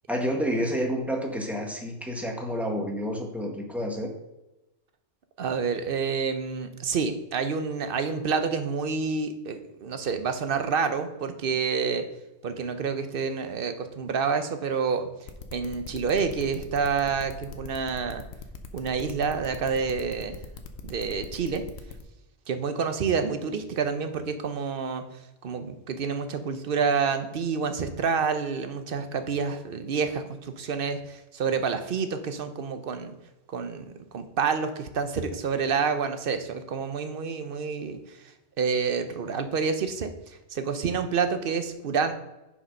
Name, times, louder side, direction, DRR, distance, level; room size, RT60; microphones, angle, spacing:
voice 1, 0.1-4.1, equal, ahead, 1 dB, 1.1 m, -29 dB
voice 2, 5.4-12.0 12.4-15.1 15.5-18.2 18.7-20.4 20.8-21.6 22.5-25.0 25.4-33.1 33.5-33.8 34.1-38.0 38.6-40.1 40.5-42.1, right 5 dB, 55° right, 8 dB, 0.8 m, -28 dB
sound 1, 15.3-22.0, left 5 dB, 65° left, 1.0 m, -41 dB
6.8 x 5.1 x 5.2 m, 0.98 s
omnidirectional pair, 1.2 m